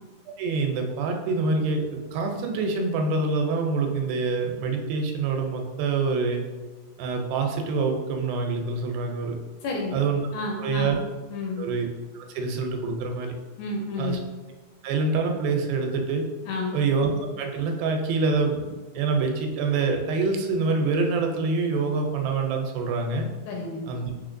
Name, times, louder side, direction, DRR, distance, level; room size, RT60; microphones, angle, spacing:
voice 1, 0.4-6.4 7.0-9.4 9.9-10.2 10.6-11.0 11.6-11.9 12.1-13.3 14.0-14.2 14.8-16.2 16.7-17.1 17.4-23.3 23.9-24.1, right 4 dB, 90° right, 3 dB, 2.5 m, -26 dB
voice 2, 9.6-10.0 10.3-11.0 11.3-11.6 13.6-14.2 16.5-16.8 23.5-23.8, left 3 dB, 80° left, 0 dB, 1.9 m, -30 dB
4.7 x 4.3 x 2.5 m, 1.3 s
omnidirectional pair, 4.1 m